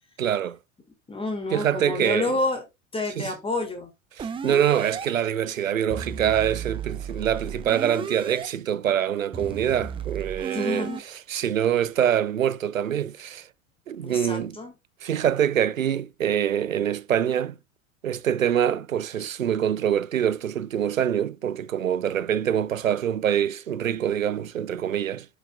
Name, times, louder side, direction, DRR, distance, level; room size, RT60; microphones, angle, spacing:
voice 1, 0.2-0.6 1.5-2.3 3.2-3.3 4.2-10.9 11.3-13.5 13.9-14.6 15.0-17.5 18.0-25.3, right 9 dB, 85° right, 0.5 m, -25 dB
voice 2, 1.1-2.6 2.9-3.9 4.4-4.6 10.5-11.0 14.0-14.7, left 2 dB, 15° left, 1.6 m, -29 dB
sound 1, 4.2-5.1 5.9-8.5 9.3-11.0, right 7 dB, 15° right, 0.6 m, -34 dB
7.9 x 5.7 x 2.2 m
figure-of-eight pair, 80°, 39 cm